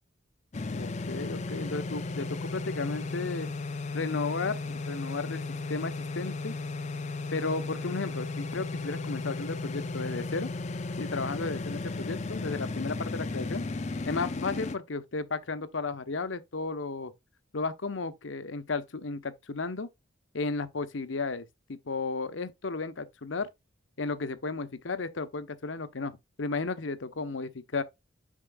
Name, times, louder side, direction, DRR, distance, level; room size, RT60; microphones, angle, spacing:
sound 1, 0.5-14.8, left 3 dB, 40° left, 0.6 m, -35 dB
voice 1, 0.7-3.5 3.9-6.6 7.3-10.5 11.0-13.6 14.1-17.1 17.5-19.9 20.3-23.5 24.0-27.8, left 3 dB, 80° left, 0.9 m, -34 dB
7.4 x 5.7 x 2.2 m
head